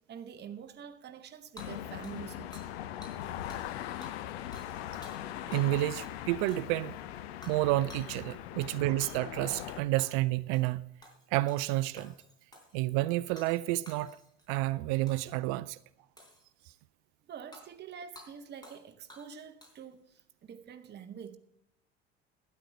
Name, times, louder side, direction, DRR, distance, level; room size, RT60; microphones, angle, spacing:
voice 1, 0.1-2.6 17.3-21.4, right 7 dB, 30° right, 0.9 m, -46 dB
sound 1, 1.6-9.8, left 12 dB, 70° left, 0.7 m, -40 dB
Hammer / Shatter, 1.6-2.8 3.0-3.2 3.5-3.7 4.0-5.7 6.0-6.1 6.5-6.9 7.4-7.6 7.9-8.1 9.0-9.1 9.5-10.2 10.5-10.8 11.0-11.6 12.0-12.8 13.4-13.6 13.9-14.5 15.1-15.4 16.2-16.7 17.5-17.6 18.2-18.3 18.6-18.8 19.1-19.9, equal, 10° left, 3.9 m, -53 dB
voice 2, 5.4-7.0 7.5-10.9 11.3-12.1 12.7-14.2 14.5-15.8, right 17 dB, 55° right, 0.5 m, -30 dB
12.5 x 9.4 x 4.7 m
figure-of-eight pair, 60°, 32 cm